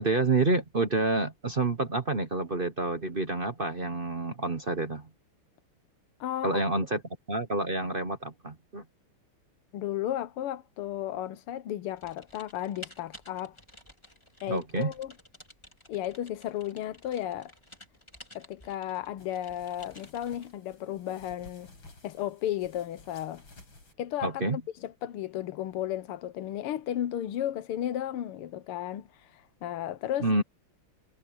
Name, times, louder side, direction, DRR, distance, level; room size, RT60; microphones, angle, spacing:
voice 1, 0.0-5.0 6.4-7.0 7.3-8.8 14.5-14.9 24.2-24.6 30.2-30.4, right 2 dB, 35° right, 1.0 m, -28 dB
voice 2, 6.2-6.6 9.7-13.6 14.4-15.1 15.9-17.5 18.4-21.7 22.0-23.4 24.0-30.3, left 12 dB, 85° left, 1.8 m, -34 dB
Typing, 12.0-20.6, left 1 dB, 10° left, 3.8 m, -53 dB
sound 1, 19.2-23.9, left 2 dB, 65° left, 6.8 m, -54 dB
omnidirectional pair, 2.4 m